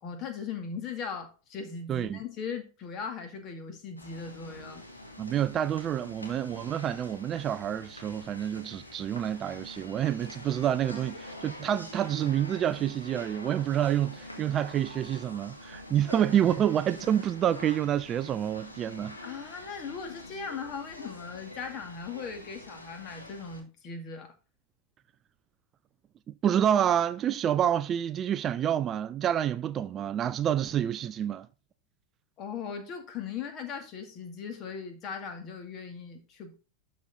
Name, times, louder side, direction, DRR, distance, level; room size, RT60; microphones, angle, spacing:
voice 1, 0.0-4.8 19.2-24.3 32.4-36.5, left 6 dB, 35° left, 2.2 m, -39 dB
voice 2, 1.9-2.2 5.2-19.2 26.3-31.5, right 10 dB, 30° right, 0.4 m, -28 dB
sound 1, 4.0-23.6, left 1 dB, 80° left, 2.1 m, -46 dB
12.0 x 4.3 x 3.9 m
figure-of-eight pair, 90°, 0 cm